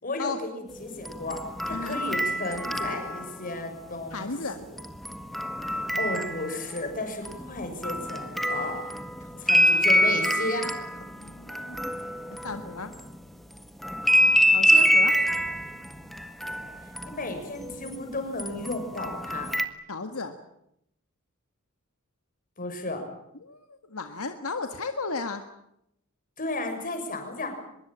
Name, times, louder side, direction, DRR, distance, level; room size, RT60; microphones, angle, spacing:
voice 1, 0.0-4.7 5.7-8.9 9.4-10.7 14.9-15.0 16.6-19.5 22.6-23.0 26.4-27.5, left 2 dB, 40° left, 5 dB, 6.6 m, -34 dB
sound 1, 1.0-3.6 4.8-6.9 7.2-13.1 13.8-18.0 18.4-19.6, equal, ahead, 1.6 m, -26 dB
voice 2, 1.7-2.0 4.1-4.7 9.3-9.4 11.2-11.8 12.1-12.9 14.5-15.2 19.9-20.4 23.4-25.4, left 3 dB, 80° left, 7 dB, 1.8 m, -34 dB
24.0 x 22.0 x 8.8 m, 0.77 s
head